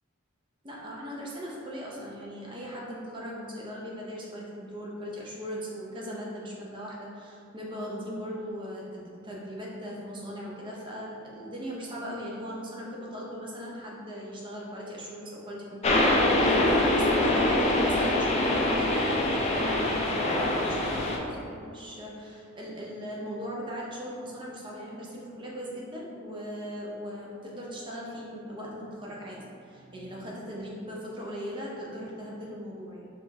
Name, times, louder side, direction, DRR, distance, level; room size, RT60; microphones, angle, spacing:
voice 1, 0.6-33.1, equal, 25° right, -4 dB, 0.6 m, -38 dB
sound 1, 15.8-21.2, left 1 dB, 30° left, 0.4 m, -24 dB
4.8 x 2.4 x 2.7 m, 2.4 s
head